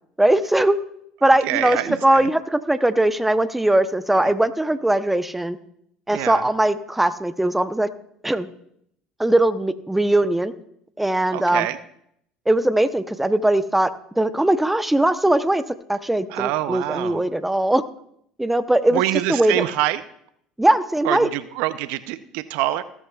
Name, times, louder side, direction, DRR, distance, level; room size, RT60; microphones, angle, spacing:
voice 1, 0.2-0.8 1.2-5.6 6.1-7.9 8.2-8.5 9.2-10.5 11.0-11.7 12.5-15.6 15.9-17.8 18.4-19.0 19.3-19.6 20.6-21.3, right 1 dB, 5° right, 11 dB, 0.8 m, -20 dB
voice 2, 1.4-2.3 4.1-4.3 6.1-6.4 11.3-11.8 16.3-17.2 18.9-20.0 21.0-22.8, right 15 dB, 70° right, 14 dB, 0.6 m, -25 dB
16.0 x 13.5 x 2.4 m, 0.71 s
hypercardioid pair, 70°, 3 cm